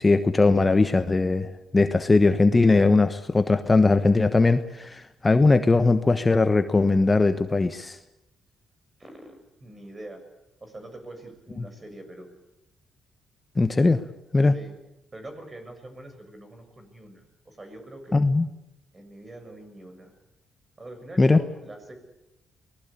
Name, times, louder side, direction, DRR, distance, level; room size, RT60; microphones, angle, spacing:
voice 1, 0.0-8.0 13.6-14.0 14.3-14.6 18.1-18.5 21.2-21.4, left 3 dB, 25° left, 9 dB, 1.1 m, -20 dB
voice 2, 9.0-10.2 10.6-12.3 14.5-14.7 15.1-18.2 18.9-20.1 20.8-21.9, right 1 dB, 25° right, 7 dB, 6.7 m, -43 dB
24.5 x 19.5 x 8.5 m, 0.92 s
cardioid pair, 90°, 0 cm